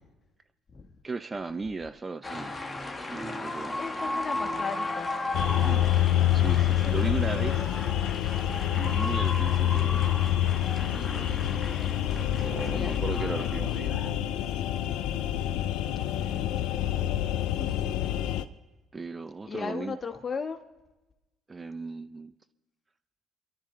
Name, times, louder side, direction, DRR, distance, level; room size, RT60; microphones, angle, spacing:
voice 1, 1.0-2.5 3.0-3.8 5.6-5.8 6.3-7.6 8.8-10.1 10.9-11.4 12.3-14.0 16.2-16.4 18.9-20.0 21.5-22.3, right 4 dB, 25° right, 12 dB, 0.6 m, -36 dB
sound 1, 2.2-14.1, left 2 dB, 15° left, 1.5 m, -36 dB
voice 2, 3.8-5.1 6.5-8.1 12.7-13.8 15.9-17.1 17.5-18.0 19.4-20.6, left 5 dB, 35° left, 5 dB, 1.5 m, -38 dB
sound 2, 5.3-18.4, left 12 dB, 70° left, 0.5 m, -27 dB
sound 3, 7.1-12.7, right 7 dB, 40° right, 7.2 m, -46 dB
28.5 x 11.5 x 3.3 m, 1.1 s
hypercardioid pair, 60°, 0 cm